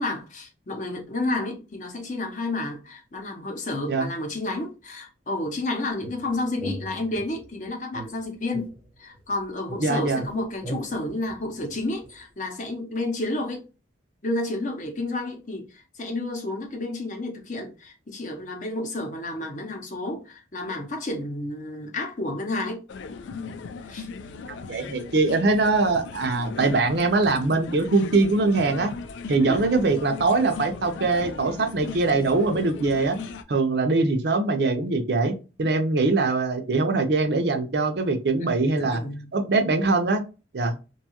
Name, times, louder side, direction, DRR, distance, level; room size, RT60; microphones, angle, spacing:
voice 1, 0.0-8.7 9.0-13.7 14.2-22.8 23.8-24.1 29.4-29.6 38.4-39.3, left 2 dB, 40° left, 0.6 m, -31 dB
sound 1, 6.0-7.5 7.9-9.4 9.7-12.2, right 1 dB, 5° left, 0.8 m, -39 dB
voice 2, 9.8-10.2 24.7-28.9 29.3-33.2 33.5-39.0 39.3-40.2 40.5-40.7, right 3 dB, 60° right, 0.5 m, -22 dB
sound 2, 22.9-33.4, left 4 dB, 75° left, 0.3 m, -37 dB
2.7 x 2.3 x 2.8 m
head